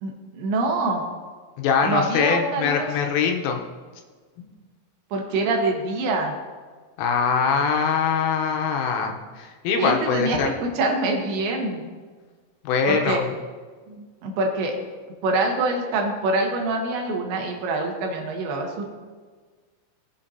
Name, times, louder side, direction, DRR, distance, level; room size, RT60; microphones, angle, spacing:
voice 1, 0.0-1.0 1.8-2.9 5.1-6.3 9.8-11.9 12.9-13.2 13.9-14.7 15.2-18.9, right 2 dB, 70° right, 1 dB, 3.3 m, -25 dB
voice 2, 1.6-3.6 4.4-4.5 7.0-10.5 12.7-13.3, left 6 dB, 85° left, 3 dB, 3.5 m, -23 dB
19.0 x 7.5 x 2.9 m, 1.5 s
omnidirectional pair, 5.7 m